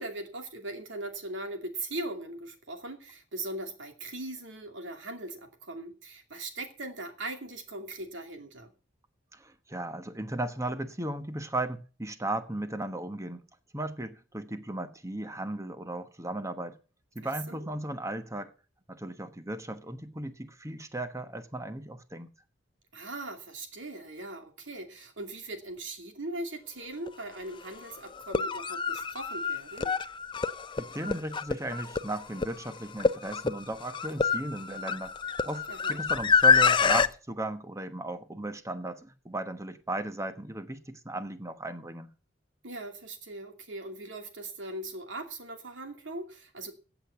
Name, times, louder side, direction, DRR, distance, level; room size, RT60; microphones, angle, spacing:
voice 1, 0.0-8.7 17.5-17.6 22.9-29.9 35.7-36.0 42.6-46.7, right 2 dB, 75° right, 2.6 m, -40 dB
voice 2, 9.3-13.4 13.7-16.8 17.1-18.5 18.9-22.3 30.8-35.1 35.4-42.1, right 1 dB, 15° right, 1.2 m, -36 dB
sound 1, 27.1-27.2 28.2-37.1, left 5 dB, 25° left, 0.6 m, -26 dB
15.5 x 8.1 x 5.8 m
head